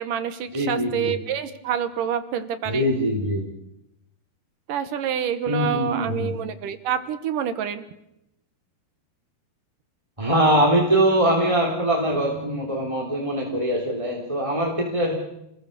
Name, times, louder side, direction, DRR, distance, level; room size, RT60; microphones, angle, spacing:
voice 1, 0.0-2.9 4.7-7.8, right 9 dB, 65° right, 11 dB, 2.4 m, -27 dB
voice 2, 0.5-1.1 2.6-3.4 5.4-6.3 10.2-15.1, right 1 dB, 10° right, -1 dB, 2.9 m, -22 dB
29.5 x 21.0 x 6.8 m, 0.85 s
omnidirectional pair, 4.8 m